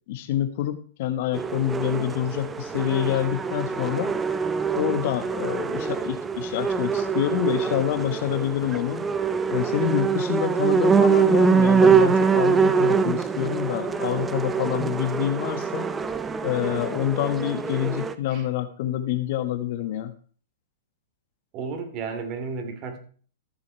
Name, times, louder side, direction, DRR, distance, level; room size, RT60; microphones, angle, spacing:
voice 1, 0.1-4.2 4.7-9.1 9.5-16.0 16.4-20.1, left 11 dB, 55° left, 1.3 m, -27 dB
sound 1, 1.3-18.1, right 5 dB, 15° right, 0.7 m, -24 dB
voice 2, 21.5-23.0, right 5 dB, 35° right, 2.8 m, -33 dB
14.0 x 7.1 x 4.6 m
hypercardioid pair, 130°, 0 cm